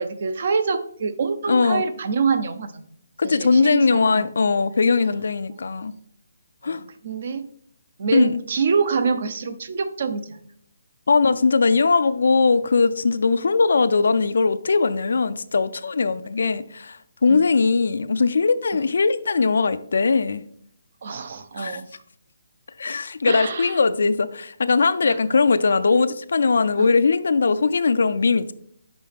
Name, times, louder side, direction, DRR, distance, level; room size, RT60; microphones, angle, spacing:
voice 1, 0.0-2.9 3.2-4.3 6.6-7.5 8.0-10.4 17.3-17.4 18.7-18.8 21.0-21.9 23.3-23.8 25.0-25.2 26.8-26.9, right 5 dB, 50° right, 0.5 m, -26 dB
voice 2, 1.5-1.8 3.2-5.9 6.6-6.8 8.1-8.3 11.1-20.4 21.6-21.8 22.8-28.5, left 4 dB, 70° left, 0.4 m, -20 dB
6.0 x 4.6 x 3.5 m
hypercardioid pair, 160°, 0 cm